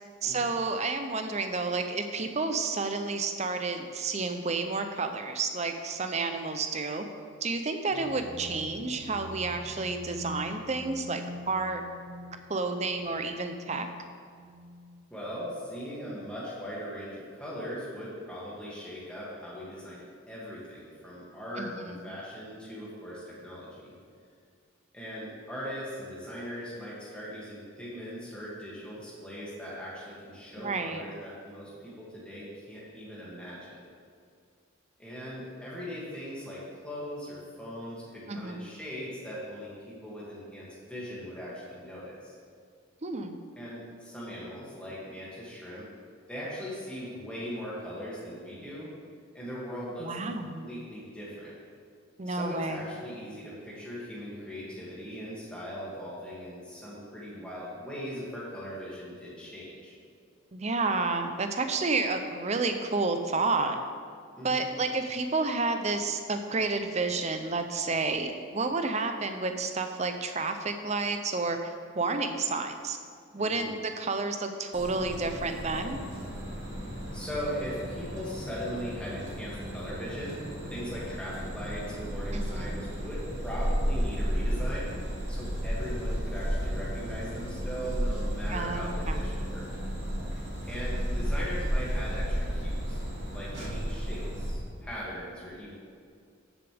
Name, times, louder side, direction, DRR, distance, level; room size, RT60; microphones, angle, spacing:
voice 1, 0.2-7.0 7.4-11.8 12.5-13.9 21.6-22.1 30.6-31.0 38.3-38.7 43.0-43.4 50.0-50.7 52.2-52.8 60.5-63.8 64.4-73.0 73.3-76.0 82.3-82.9 88.5-89.2, right 3 dB, 30° right, 7 dB, 0.6 m, -30 dB
sound 1, 7.9-15.6, equal, 75° right, 1.1 m, -45 dB
voice 2, 15.1-23.9 24.9-33.8 35.0-42.3 43.6-45.9 46.3-48.9 49.3-51.5 52.3-60.0 64.3-64.7 73.4-73.7 77.1-89.6 90.6-93.0 93.3-95.7, equal, 5° left, -8 dB, 2.4 m, -39 dB
sound 2, 74.7-94.5, equal, 55° right, 2.8 m, -33 dB
14.0 x 7.1 x 3.5 m, 2.2 s
head